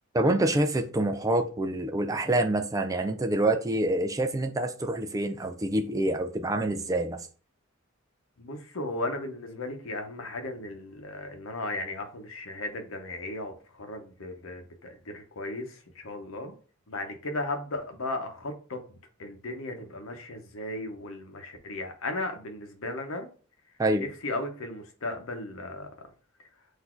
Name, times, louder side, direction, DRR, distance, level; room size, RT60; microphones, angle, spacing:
voice 1, 0.1-7.3 23.8-24.0, right 1 dB, 15° right, 0.4 m, -26 dB
voice 2, 8.4-16.6 16.9-18.8 19.2-23.3 24.0-25.9, left 2 dB, 75° left, 0.8 m, -36 dB
4.0 x 2.7 x 4.4 m
head